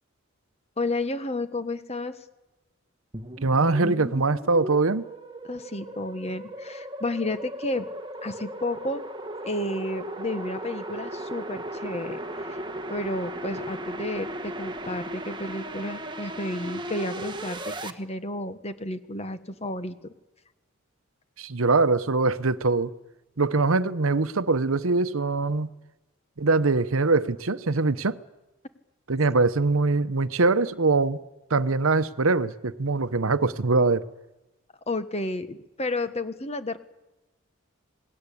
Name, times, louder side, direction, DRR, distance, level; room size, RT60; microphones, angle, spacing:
voice 1, 0.8-2.2 5.5-7.8 8.2-9.0 9.4-12.2 12.5-12.6 12.9-20.1 34.9-36.8, left 2 dB, 30° left, 1.4 m, -31 dB
sound 1, 3.1-17.9, right 1 dB, 20° right, 1.4 m, -36 dB
voice 2, 3.4-5.0 21.4-22.9 23.4-25.7 26.4-28.2 29.1-31.2 31.5-34.0, right 3 dB, 80° right, 0.9 m, -23 dB
27.5 x 19.5 x 8.5 m
head